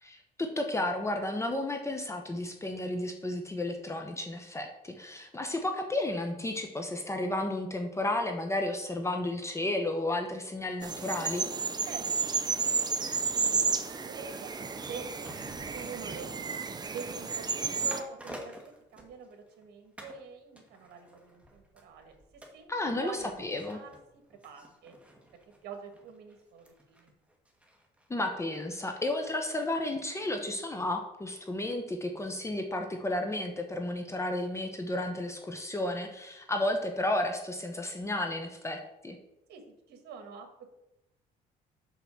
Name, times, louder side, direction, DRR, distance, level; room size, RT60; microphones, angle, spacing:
voice 1, 0.0-11.5 22.7-23.8 28.1-39.2, left 1 dB, 15° left, 4 dB, 1.0 m, -32 dB
sound 1, 10.8-18.0, right 5 dB, 25° right, 0.7 m, -32 dB
voice 2, 11.9-15.1 15.7-16.6 16.9-22.7 23.0-23.4 23.7-25.0 25.6-27.1 39.5-39.6 39.9-40.7, right 5 dB, 75° right, 6 dB, 1.9 m, -46 dB
sound 2, 14.5-19.6 20.0-20.2 20.6-29.7 30.0-30.1, equal, 5° right, 2.0 m, -52 dB
6.0 x 6.0 x 7.1 m, 0.89 s
cardioid pair, 110°, 17 cm